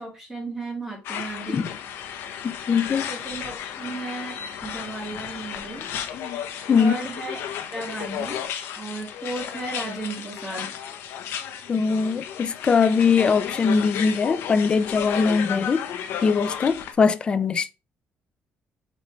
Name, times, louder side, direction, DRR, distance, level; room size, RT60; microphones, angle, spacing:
voice 1, 0.0-1.7 3.1-5.9 6.8-7.4 7.7-8.4 8.8-10.8, right 2 dB, 10° right, 1.6 m, -34 dB
sound 1, 1.0-16.9, left 9 dB, 85° left, 0.7 m, -33 dB
voice 2, 2.4-3.0 6.7-6.9 11.7-15.9 16.2-17.7, left 5 dB, 25° left, 0.3 m, -21 dB
4.0 x 2.9 x 4.4 m
cardioid pair, 170°, 4 cm